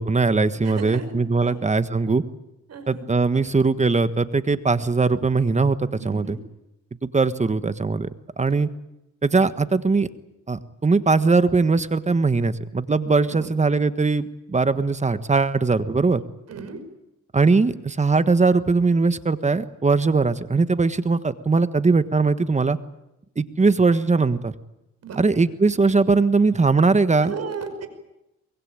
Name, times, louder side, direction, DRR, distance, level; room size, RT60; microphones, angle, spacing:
voice 1, 0.0-2.2 2.9-6.4 7.0-8.1 8.4-8.7 9.2-10.1 10.5-16.2 17.3-22.8 23.4-24.5 25.2-27.3, right 4 dB, 25° right, 12 dB, 1.4 m, -20 dB
voice 2, 0.6-1.1 1.4-1.6 2.7-3.0 6.0-6.4 8.5-8.6 13.3-13.5 16.5-16.8 25.0-25.4 27.2-27.9, right 5 dB, 55° right, 10 dB, 5.6 m, -35 dB
24.5 x 22.0 x 9.0 m, 0.91 s
cardioid pair, 90°, 30 cm